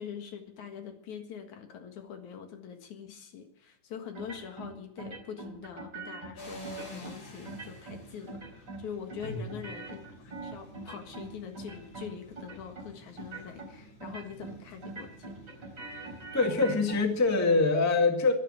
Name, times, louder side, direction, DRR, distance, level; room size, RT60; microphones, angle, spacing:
voice 1, 0.0-15.7, left 7 dB, 70° left, 5 dB, 3.1 m, -44 dB
sound 1, 4.1-4.7 5.0-6.3 6.6-7.1 7.4-8.0 8.3-8.8 9.1-11.3 11.5-12.1 12.4-12.9 13.2-13.7 14.0-14.6 14.8-17.0, right 3 dB, 35° right, 4.6 m, -42 dB
sound 2, 6.4-17.4, equal, 40° left, 3.9 m, -50 dB
voice 2, 16.3-18.3, left 3 dB, 10° left, 3 dB, 1.2 m, -25 dB
12.5 x 11.5 x 9.1 m, 0.73 s
omnidirectional pair, 3.5 m